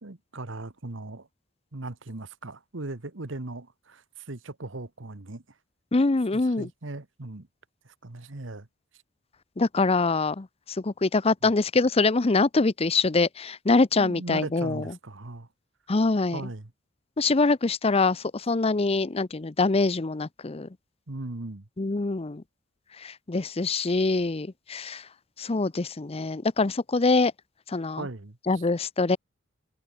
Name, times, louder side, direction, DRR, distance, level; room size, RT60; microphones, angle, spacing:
voice 1, 0.0-1.3 1.7-5.4 6.3-7.5 7.8-8.7 11.4-11.5 14.0-15.5 16.3-16.7 21.1-21.7 28.0-28.6, right 2 dB, 70° right, 1.5 m, -38 dB
voice 2, 5.9-6.7 9.6-10.5 10.8-14.8 15.9-16.4 17.2-20.7 21.8-22.4 23.0-25.0 25.4-27.3 27.7-28.1 28.5-29.2, left 3 dB, 30° left, 0.6 m, -24 dB
head